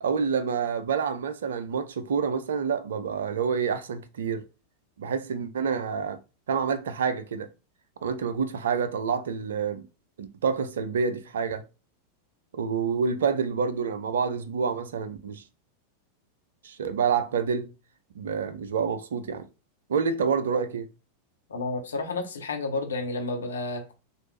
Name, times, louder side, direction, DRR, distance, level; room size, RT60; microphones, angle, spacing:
voice 1, 0.0-4.5 5.0-6.2 6.5-7.5 8.0-9.9 10.2-11.6 12.5-15.4 16.6-17.7 18.2-19.5 19.9-20.9, right 6 dB, 65° right, 0.5 m, -28 dB
voice 2, 21.5-23.9, left 3 dB, 70° left, 1.1 m, -31 dB
4.2 x 2.5 x 3.2 m
figure-of-eight pair, 90°, 0 cm